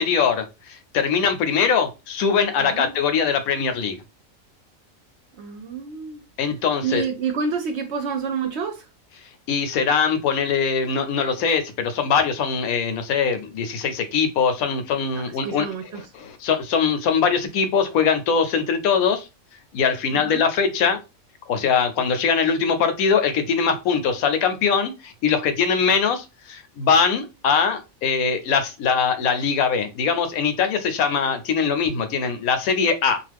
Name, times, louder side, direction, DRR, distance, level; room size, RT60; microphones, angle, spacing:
voice 1, 0.0-4.0 6.4-7.0 9.5-15.7 16.2-19.3 19.7-21.0 21.5-33.2, left 6 dB, 85° left, 1.1 m, -22 dB
voice 2, 2.6-2.9 5.4-6.2 6.8-8.9 15.1-16.0 20.1-20.4, right 5 dB, 65° right, 0.7 m, -28 dB
2.5 x 2.4 x 3.3 m
omnidirectional pair, 1.5 m